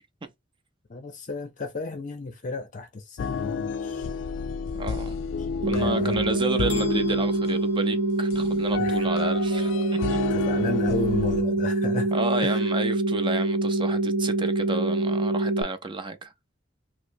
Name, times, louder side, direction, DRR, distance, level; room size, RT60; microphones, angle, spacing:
voice 1, 0.9-4.1 5.4-6.3 8.8-9.0 10.3-12.1 12.4-12.6, left 3 dB, 40° left, 0.6 m, -33 dB
sound 1, 3.2-11.4, left 6 dB, 85° left, 0.3 m, -32 dB
voice 2, 4.8-5.2 5.7-10.2 12.1-16.3, right 3 dB, 25° right, 0.6 m, -31 dB
sound 2, 5.6-15.6, right 2 dB, 70° right, 0.8 m, -25 dB
sound 3, 6.7-8.7, left 6 dB, 10° right, 0.9 m, -44 dB
4.8 x 2.0 x 2.6 m
head